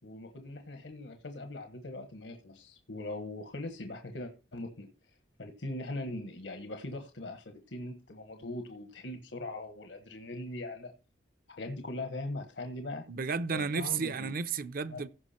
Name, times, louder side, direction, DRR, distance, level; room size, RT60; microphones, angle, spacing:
voice 1, 0.0-4.9 5.4-10.9 11.6-13.0 13.5-14.3 14.9-15.0, left 2 dB, 90° left, 1.4 m, -40 dB
voice 2, 13.1-15.1, right 5 dB, 55° right, 0.6 m, -33 dB
15.5 x 5.7 x 4.3 m
head